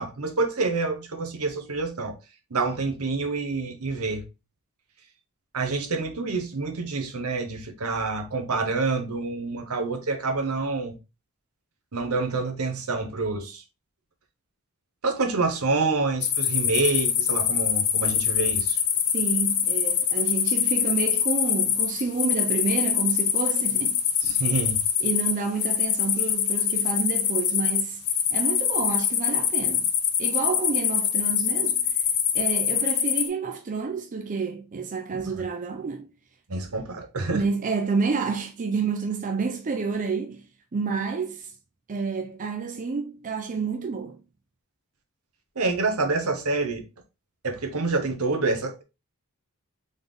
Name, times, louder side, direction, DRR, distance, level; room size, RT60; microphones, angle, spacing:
voice 1, 0.0-2.1 2.5-4.2 5.5-10.9 11.9-13.6 15.0-18.8 24.2-24.8 35.1-35.2 36.5-37.4 45.6-46.8 47.4-48.8, right 3 dB, 75° right, 1.1 m, -27 dB
sound 1, 16.2-33.3, left 9 dB, 80° left, 0.8 m, -24 dB
voice 2, 19.1-24.0 25.0-28.0 28.3-29.9 30.2-32.0 32.3-36.1 37.3-40.4 40.7-41.5 41.9-44.2, right 4 dB, 35° right, 0.4 m, -29 dB
4.0 x 3.5 x 3.8 m
head